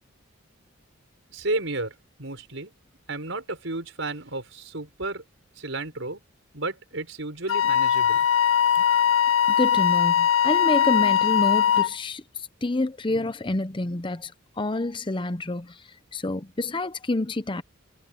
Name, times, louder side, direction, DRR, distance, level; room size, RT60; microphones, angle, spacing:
voice 1, 1.3-2.7 3.1-5.2 5.6-6.2 6.5-8.2, right 2 dB, 65° right, 5.8 m, -32 dB
Wind instrument woodwind instrument, 7.5-11.9, left 9 dB, 90° left, 1.2 m, -20 dB
voice 2, 9.6-12.2 12.6-14.3 14.6-15.7 16.1-17.6, left 2 dB, 25° left, 0.7 m, -28 dB
head